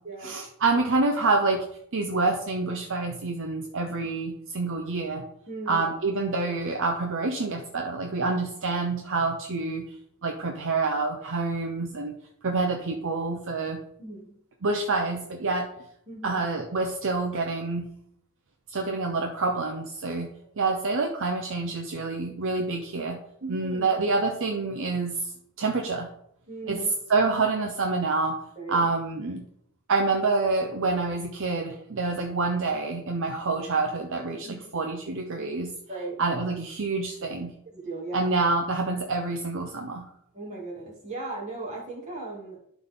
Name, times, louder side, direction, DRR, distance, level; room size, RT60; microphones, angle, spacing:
voice 1, 0.2-1.7 1.9-5.2 5.7-9.8 10.2-12.1 12.4-13.8 14.6-15.7 16.2-17.9 18.7-20.3 20.6-23.2 23.5-25.3 25.6-26.1 26.7-26.8 27.1-28.4 28.7-29.4 29.9-35.7 36.2-37.5 38.1-40.1, right 3 dB, 60° right, 3 dB, 0.7 m, -27 dB
voice 2, 5.5-5.9 14.0-14.3 16.1-16.4 23.4-23.9 26.5-26.9 28.6-28.8 34.4-34.6 35.9-36.2 37.6-38.3 40.3-42.6, right 2 dB, 35° right, -4 dB, 2.6 m, -37 dB
11.5 x 4.1 x 3.8 m, 0.71 s
head